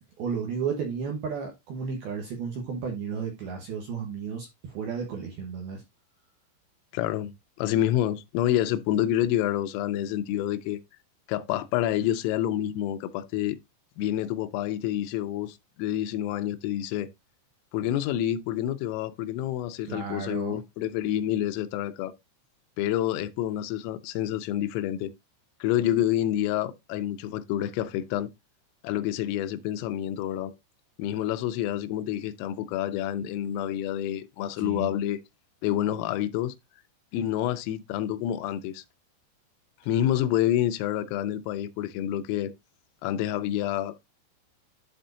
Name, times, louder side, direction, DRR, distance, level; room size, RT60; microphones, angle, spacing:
voice 1, 0.2-5.8 19.9-20.6 34.6-34.9, right 6 dB, 75° right, 2.4 m, -33 dB
voice 2, 6.9-7.3 7.6-10.8 11.3-13.6 14.0-17.1 17.7-22.2 22.8-25.1 25.6-28.3 28.8-30.5 31.0-35.2 35.6-36.5 37.1-38.8 39.9-42.5 43.0-44.0, left 12 dB, 85° left, 3.3 m, -28 dB
11.5 x 4.3 x 2.6 m
omnidirectional pair, 5.8 m